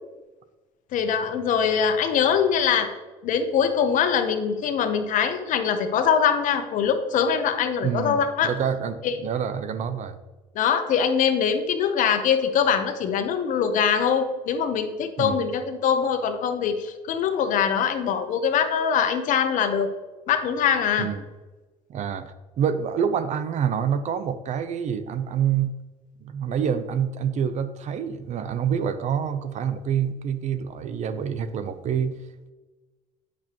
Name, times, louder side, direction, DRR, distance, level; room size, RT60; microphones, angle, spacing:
voice 1, 0.9-2.9 3.2-8.5 9.0-9.2 10.5-19.9 20.3-21.1, left 7 dB, 60° left, 7 dB, 0.9 m, -23 dB
voice 2, 7.8-10.2 15.2-15.4 21.0-21.2 21.9-25.8 26.2-32.2, right 8 dB, 55° right, 11 dB, 0.6 m, -27 dB
8.5 x 6.1 x 3.0 m, 1.2 s
supercardioid pair, 90°, 15 cm